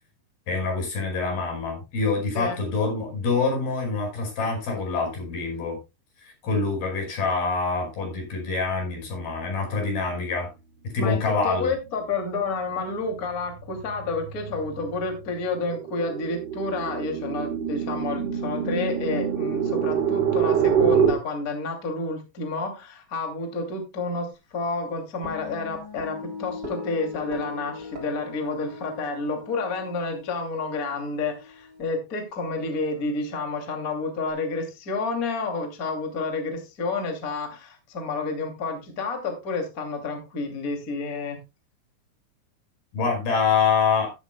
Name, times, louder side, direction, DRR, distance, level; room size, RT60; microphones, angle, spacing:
voice 1, 0.5-5.8 6.2-10.5 10.9-11.7 42.9-44.1, left 4 dB, 75° left, 2 dB, 7.0 m, -25 dB
voice 2, 11.0-41.4, left 3 dB, 25° left, 3 dB, 2.4 m, -30 dB
sound 1, 11.4-11.8 12.2-21.1, right 7 dB, 80° right, 3.6 m, -26 dB
sound 2, 25.2-31.8, left 4 dB, 25° right, 3.9 m, -39 dB
13.0 x 12.5 x 2.2 m, 0.25 s
omnidirectional pair, 4.4 m